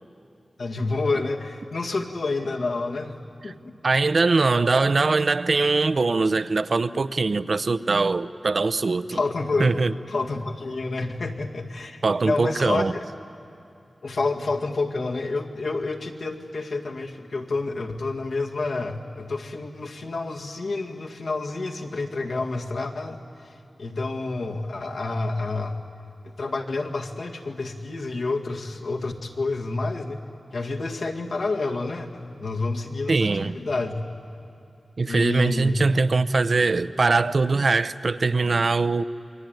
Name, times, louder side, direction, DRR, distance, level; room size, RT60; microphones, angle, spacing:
voice 1, 0.6-3.7 9.1-9.7 10.1-13.1 14.0-25.8 26.2-30.2 30.5-34.0 35.0-35.8, left 3 dB, 80° left, 0 dB, 2.0 m, -29 dB
voice 2, 3.8-9.2 9.6-9.9 12.0-12.9 33.1-33.6 35.0-39.0, right 3 dB, 55° right, 14 dB, 0.7 m, -22 dB
28.5 x 22.0 x 9.2 m, 2.6 s
wide cardioid pair, 90°, 0 cm